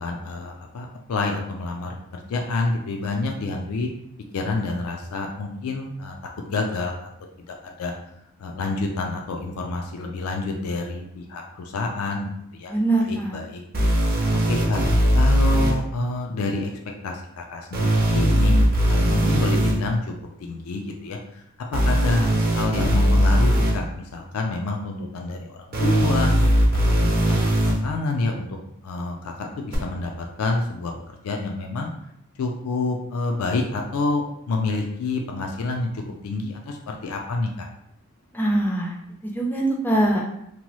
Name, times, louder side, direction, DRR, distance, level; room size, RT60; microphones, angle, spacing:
voice 1, 0.0-3.9 4.3-6.1 6.5-7.0 7.6-7.9 8.4-12.7 13.1-13.6 14.5-14.8 15.1-16.7 17.0-18.6 18.9-20.0 20.4-21.4 21.7-26.3 26.9-28.5 28.8-30.9 31.2-31.9 32.4-37.7, left 3 dB, 75° left, 2 dB, 0.4 m, -28 dB
voice 2, 12.7-13.4 38.3-38.9 39.2-40.2, right 1 dB, 10° left, -1 dB, 0.4 m, -22 dB
sound 1, 13.7-15.7 17.7-19.7 21.7-23.7 25.7-27.7 29.7-29.8, equal, 40° right, 0.6 m, -19 dB
2.9 x 2.2 x 3.0 m, 0.77 s
head